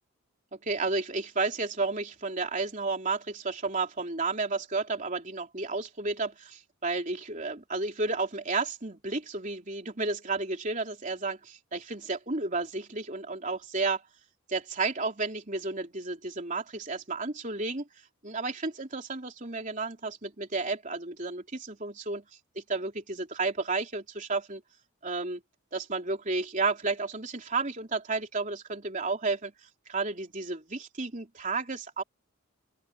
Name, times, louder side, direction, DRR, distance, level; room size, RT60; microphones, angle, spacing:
voice 1, 0.6-14.0 14.5-17.9 18.2-22.2 22.6-24.6 25.0-25.4 25.7-29.5 29.9-32.0, right 3 dB, 35° right, 3.5 m, -32 dB
open air
head